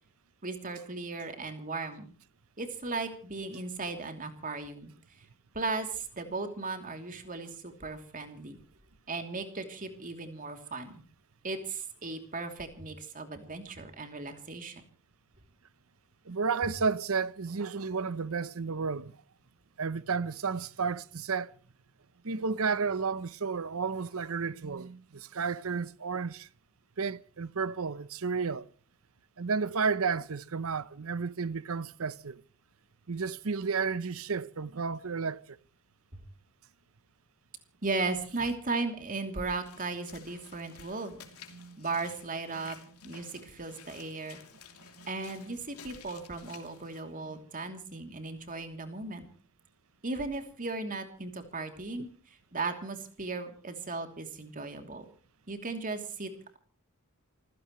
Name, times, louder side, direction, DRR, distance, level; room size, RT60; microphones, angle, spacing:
voice 1, 0.4-2.1 2.6-4.9 5.5-8.6 9.1-11.0 11.4-14.8 36.1-36.2 37.8-41.2 41.8-42.8 43.0-44.4 45.1-49.3 50.0-55.1 55.5-56.6, right 3 dB, 35° right, 2.9 m, -36 dB
voice 2, 16.3-19.1 19.8-21.5 22.2-26.5 27.0-28.6 29.4-32.4 33.1-35.6 41.5-41.8 45.0-45.1 47.3-47.4, right 5 dB, 65° right, 0.8 m, -32 dB
Walk footsteps / Splash splatter, 39.6-47.0, left 7 dB, 80° left, 2.9 m, -53 dB
28.0 x 16.0 x 3.1 m
head